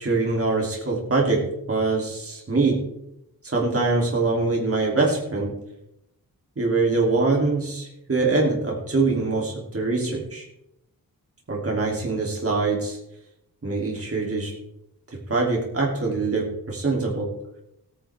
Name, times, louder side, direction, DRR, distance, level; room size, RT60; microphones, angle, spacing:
voice 1, 0.0-2.8 3.4-5.5 6.6-10.5 11.5-13.0 13.6-14.5 15.3-17.3, right 3 dB, 40° right, -2 dB, 2.8 m, -23 dB
17.0 x 9.8 x 3.4 m, 0.82 s
wide cardioid pair, 130°, 37 cm